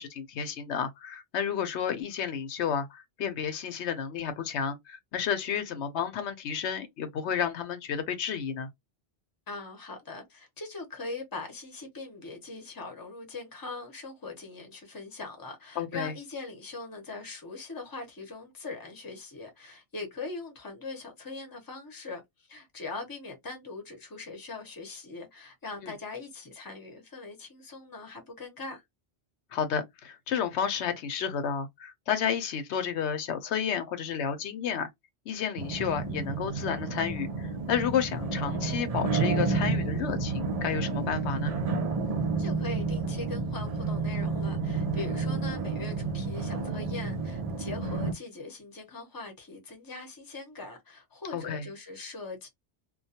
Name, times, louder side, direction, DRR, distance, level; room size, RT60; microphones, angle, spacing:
voice 1, 0.0-8.7 15.8-16.1 25.8-25.9 29.5-34.9 35.3-41.5 51.3-51.6, left 7 dB, 85° left, 0.9 m, -31 dB
voice 2, 9.5-28.8 42.4-52.5, left 3 dB, 20° left, 0.7 m, -41 dB
sound 1, 35.6-48.1, right 3 dB, 50° right, 0.4 m, -30 dB
2.2 x 2.2 x 2.7 m
omnidirectional pair, 1.1 m